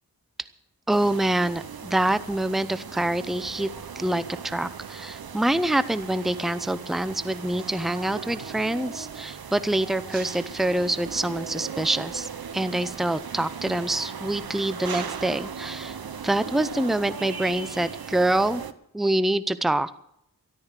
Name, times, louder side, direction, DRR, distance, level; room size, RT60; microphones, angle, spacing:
voice 1, 0.9-3.7 4.0-16.0 16.2-18.6 18.9-19.9, right 1 dB, ahead, 14 dB, 0.7 m, -26 dB
sound 1, 0.9-18.7, right 6 dB, 75° right, 0.9 m, -37 dB
13.5 x 12.0 x 6.7 m, 0.73 s
wide cardioid pair, 60°, 37 cm